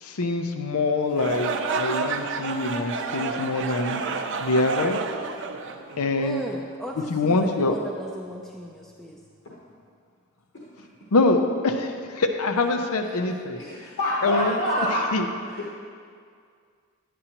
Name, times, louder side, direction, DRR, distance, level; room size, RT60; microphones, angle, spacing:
voice 1, 0.0-4.0 4.4-5.0 6.0-6.4 7.1-7.8 11.1-13.6 14.2-14.6 15.1-15.3, left 2 dB, 85° left, 6 dB, 0.6 m, -24 dB
sound 1, 1.1-6.3, right 4 dB, 55° right, 0.5 m, -30 dB
voice 2, 6.2-9.2 14.2-15.0, right 1 dB, ahead, -3 dB, 0.4 m, -37 dB
voice 3, 10.5-10.9 13.5-15.0 15.4-15.7, left 1 dB, 55° left, -6 dB, 1.1 m, -27 dB
9.8 x 9.2 x 2.9 m, 2.2 s
head